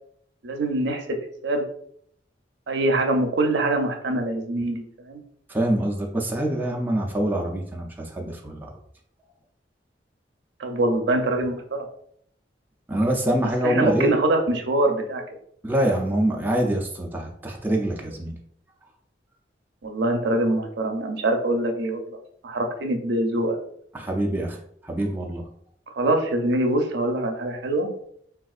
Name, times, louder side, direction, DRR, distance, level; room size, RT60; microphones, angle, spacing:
voice 1, 0.4-1.0 1.4-1.6 2.7-5.2 10.6-11.8 13.6-15.2 19.8-22.2 22.4-23.6 26.0-27.9, right 1 dB, 65° right, 4 dB, 0.5 m, -24 dB
voice 2, 5.5-8.7 12.9-14.1 15.6-18.3 23.9-24.6 24.8-25.4, right 1 dB, 10° right, 0 dB, 0.4 m, -25 dB
3.5 x 2.4 x 2.4 m, 0.65 s
head